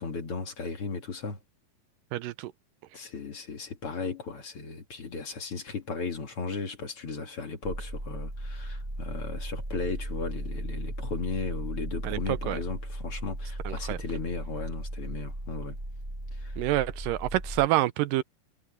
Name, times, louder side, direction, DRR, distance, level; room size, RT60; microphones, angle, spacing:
voice 1, 0.0-1.4 2.9-15.8 16.4-16.5, left 4 dB, 45° left, 2.8 m, -36 dB
voice 2, 2.1-2.5 12.0-12.6 13.7-14.0 16.6-18.2, right 15 dB, 85° right, 2.4 m, -27 dB
sound 1, 7.6-17.7, right 1 dB, 15° right, 7.9 m, -36 dB
omnidirectional pair, 3.9 m